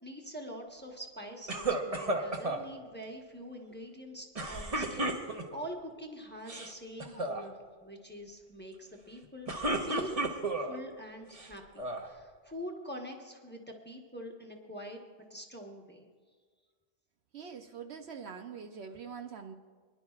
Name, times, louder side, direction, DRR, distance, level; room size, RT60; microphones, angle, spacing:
voice 1, 0.0-10.3 10.6-15.0 15.3-16.1, equal, 10° left, 1 dB, 1.0 m, -45 dB
sound 1, 1.5-2.6 4.4-5.7 6.4-6.7 7.0-7.4 9.2-10.8 11.3-12.1, right 2 dB, 30° right, 1.0 m, -33 dB
voice 2, 17.3-19.5, right 6 dB, 65° right, 5 dB, 0.9 m, -44 dB
24.0 x 11.0 x 2.4 m, 1.5 s
omnidirectional pair, 1.3 m